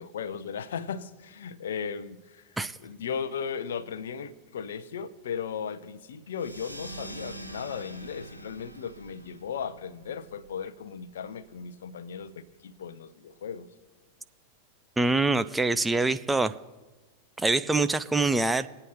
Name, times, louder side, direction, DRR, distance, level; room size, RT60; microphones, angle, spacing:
voice 1, 0.0-13.7 15.7-15.8, left 7 dB, 60° left, 0.8 m, -36 dB
sound 1, 6.3-11.4, right 2 dB, 90° left, 0.9 m, -45 dB
voice 2, 15.0-16.6 17.4-18.7, right 3 dB, 10° right, 0.4 m, -25 dB
22.0 x 8.8 x 3.0 m
figure-of-eight pair, 90°, 0 cm